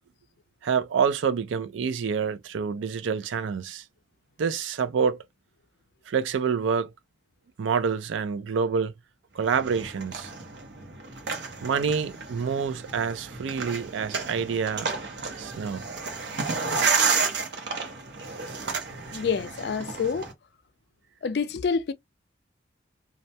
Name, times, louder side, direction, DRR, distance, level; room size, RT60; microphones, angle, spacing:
voice 1, 0.6-3.8 4.4-5.2 6.1-6.9 7.6-8.9 9.3-10.3 11.6-14.9 15.4-15.8, right 6 dB, 90° right, 0.4 m, -27 dB
sound 1, 9.5-20.3, right 4 dB, 65° right, 0.7 m, -31 dB
voice 2, 19.1-20.3 21.2-21.9, left 5 dB, 60° left, 0.4 m, -27 dB
2.3 x 2.1 x 2.7 m
head